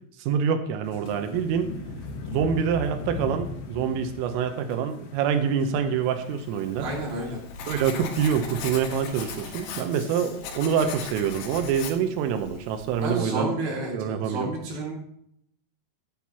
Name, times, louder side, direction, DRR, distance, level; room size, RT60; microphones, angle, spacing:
voice 1, 0.2-1.7 2.3-6.9 7.7-13.5 13.9-14.5, right 7 dB, 90° right, 7 dB, 3.5 m, -26 dB
sound 1, 0.8-11.3, left 4 dB, 65° left, 3.0 m, -40 dB
Writing, 6.5-13.2, left 6 dB, 85° left, 4.0 m, -39 dB
voice 2, 6.8-7.4 13.0-14.9, right 2 dB, 55° right, -2 dB, 3.9 m, -30 dB
14.5 x 8.4 x 2.9 m, 0.71 s
omnidirectional pair, 5.7 m